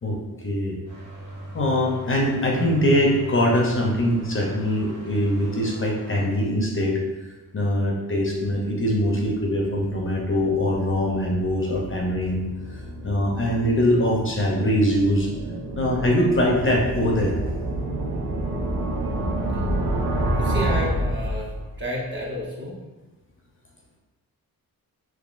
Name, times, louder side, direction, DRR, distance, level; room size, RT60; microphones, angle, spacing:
voice 1, 0.0-0.8 1.5-7.0 7.5-15.3 15.8-17.4, left 1 dB, 35° left, -1 dB, 0.6 m, -22 dB
sound 1, 0.9-6.3, right 2 dB, 55° right, 1.3 m, -38 dB
sound 2, 9.0-21.9, right 1 dB, 80° right, 0.6 m, -29 dB
voice 2, 20.4-21.5 21.8-22.8, equal, 30° right, -4 dB, 1.0 m, -30 dB
3.6 x 3.0 x 2.5 m, 1.1 s
cardioid pair, 90°, 36 cm